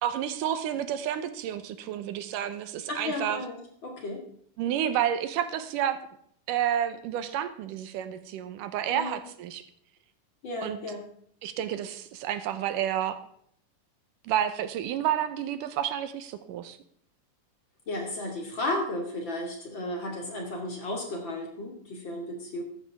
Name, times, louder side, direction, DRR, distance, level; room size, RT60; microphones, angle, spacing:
voice 1, 0.0-3.4 4.6-6.0 6.5-9.6 10.6-10.8 11.4-13.2 14.2-16.8, right 10 dB, 85° right, 11 dB, 2.5 m, -30 dB
voice 2, 2.9-4.3 8.9-9.2 10.4-11.0 17.9-22.6, left 1 dB, 40° left, 1 dB, 2.8 m, -34 dB
14.5 x 12.5 x 3.6 m, 0.64 s
omnidirectional pair, 3.7 m